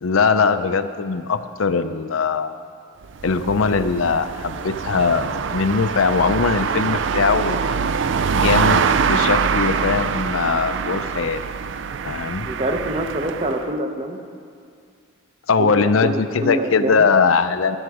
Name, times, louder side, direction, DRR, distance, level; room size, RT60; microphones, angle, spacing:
voice 1, 0.0-2.5 3.2-7.6 8.3-11.4 12.0-12.5 15.5-17.8, left 5 dB, 80° left, 11 dB, 0.6 m, -20 dB
sound 1, 3.0-13.7, right 6 dB, 60° right, 0.4 m, -24 dB
voice 2, 12.5-14.2 15.6-17.1, right 1 dB, 30° right, 4 dB, 0.9 m, -25 dB
20.5 x 8.1 x 4.9 m, 2.3 s
head